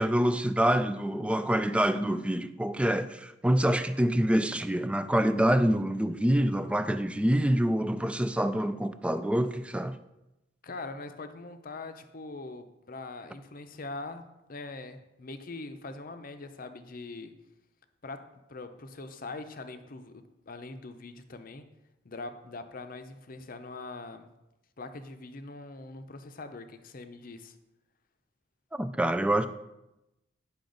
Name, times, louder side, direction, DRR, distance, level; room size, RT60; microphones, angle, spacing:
voice 1, 0.0-10.0 28.7-29.5, right 1 dB, 5° right, 0.3 m, -26 dB
voice 2, 10.6-17.4 18.0-21.6 22.0-24.3 24.8-27.6, left 3 dB, 45° left, 0.6 m, -42 dB
10.0 x 5.8 x 3.9 m
head